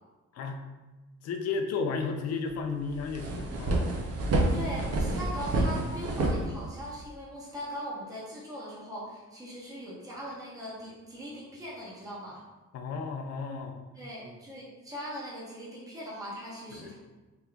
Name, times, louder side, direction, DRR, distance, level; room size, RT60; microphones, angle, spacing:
voice 1, 0.3-0.6 1.2-3.8 12.7-13.8 16.7-16.9, left 4 dB, 55° left, 4 dB, 0.5 m, -33 dB
sound 1, 2.5-2.6 2.9-7.1, right 2 dB, 55° right, 0.6 m, -28 dB
voice 2, 4.5-12.4 13.9-16.9, equal, 10° right, -7 dB, 1.0 m, -40 dB
3.5 x 3.0 x 2.3 m, 1.2 s
cardioid pair, 90°, 30 cm